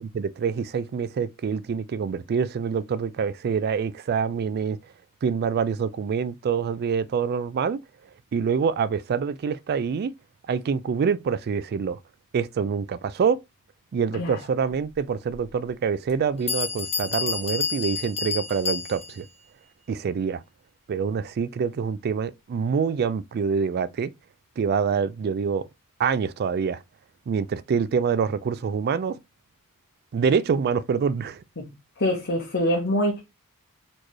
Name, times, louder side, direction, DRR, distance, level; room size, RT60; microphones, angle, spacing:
voice 1, 0.0-4.8 5.2-7.8 8.3-10.1 10.5-12.0 12.3-13.4 13.9-19.3 19.9-20.4 20.9-24.1 24.6-25.7 26.0-26.8 27.3-29.2 30.1-31.4, right 6 dB, 45° right, 0.3 m, -26 dB
Bell, 16.1-16.2 16.5-19.3, left 5 dB, 25° left, 1.0 m, -29 dB
voice 2, 32.0-33.2, left 1 dB, 55° left, 0.9 m, -24 dB
4.3 x 3.1 x 3.0 m
head